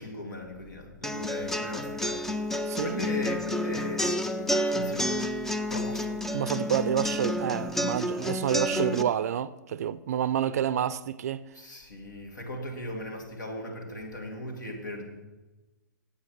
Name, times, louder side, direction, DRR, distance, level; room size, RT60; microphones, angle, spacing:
voice 1, 0.0-2.2 2.8-4.2 4.7-5.2 5.7-6.4 11.5-15.2, left 1 dB, 65° left, 2.6 m, -38 dB
sound 1, 1.0-9.0, left 1 dB, 5° left, 0.4 m, -30 dB
voice 2, 2.7-3.0 6.3-11.4, right 9 dB, 50° right, 0.5 m, -28 dB
9.5 x 8.4 x 6.0 m
figure-of-eight pair, 115°, 11 cm